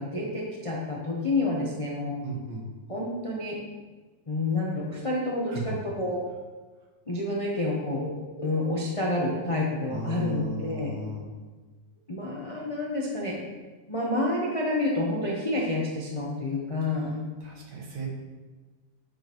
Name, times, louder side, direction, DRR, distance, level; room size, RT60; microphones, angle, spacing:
voice 1, 0.0-2.1 2.9-3.6 4.3-6.2 7.1-8.1 8.4-10.9 12.1-13.4 13.9-17.1, left 2 dB, 35° left, -4 dB, 0.5 m, -29 dB
voice 2, 2.2-2.7 5.5-5.8 9.9-11.3 17.4-18.1, right 2 dB, 65° right, -1 dB, 1.8 m, -35 dB
8.8 x 5.1 x 3.0 m, 1.3 s
omnidirectional pair, 2.0 m